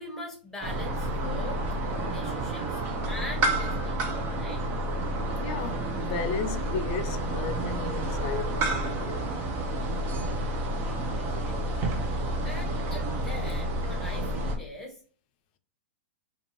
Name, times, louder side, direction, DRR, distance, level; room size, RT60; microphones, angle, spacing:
voice 1, 0.0-1.6 1.9-2.8 3.1-4.6 10.7-11.9 12.4-15.0, left 1 dB, 5° left, 1.1 m, -42 dB
sound 1, 0.6-14.6, right 1 dB, 35° right, 0.7 m, -30 dB
voice 2, 5.4-9.4, left 5 dB, 50° left, 0.4 m, -35 dB
2.5 x 2.3 x 3.0 m
hypercardioid pair, 115°, 6 cm